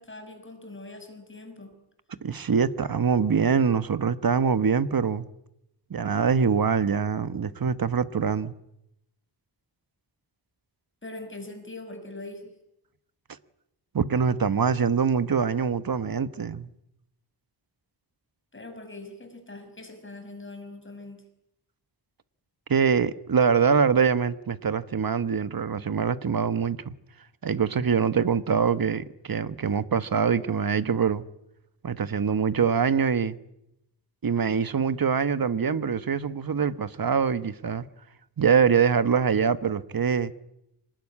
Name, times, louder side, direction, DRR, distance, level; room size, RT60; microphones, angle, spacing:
voice 1, 0.0-1.7 11.0-12.5 18.5-21.3, left 2 dB, 25° left, 5.7 m, -42 dB
voice 2, 2.2-5.2 5.9-8.5 13.9-16.7 22.7-26.9 27.4-31.2 31.8-33.4 34.2-37.9 38.4-40.3, right 6 dB, 50° right, 1.2 m, -24 dB
25.5 x 20.0 x 9.8 m
wide cardioid pair, 135°, 43 cm